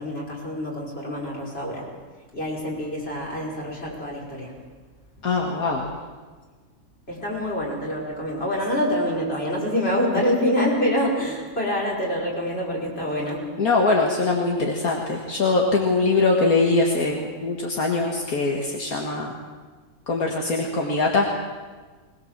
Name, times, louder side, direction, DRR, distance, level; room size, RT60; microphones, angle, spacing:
voice 1, 0.0-1.9 2.3-4.6 7.1-13.5, equal, 40° left, -3 dB, 5.4 m, -26 dB
voice 2, 5.2-5.9 13.6-19.3 20.1-21.3, left 3 dB, 70° left, 0 dB, 2.3 m, -22 dB
21.5 x 21.0 x 7.5 m, 1.4 s
omnidirectional pair, 1.6 m